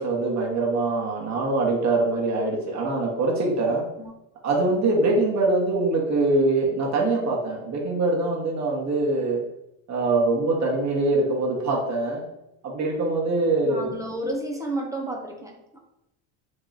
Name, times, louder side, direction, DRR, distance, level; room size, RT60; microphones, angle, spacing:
voice 1, 0.0-3.8 4.4-9.4 9.9-12.2 12.6-13.9, right 2 dB, 40° right, -1 dB, 1.3 m, -23 dB
voice 2, 13.6-15.8, right 1 dB, 10° right, 0 dB, 0.6 m, -31 dB
3.1 x 2.9 x 3.9 m, 0.87 s
supercardioid pair, 100°, 42 cm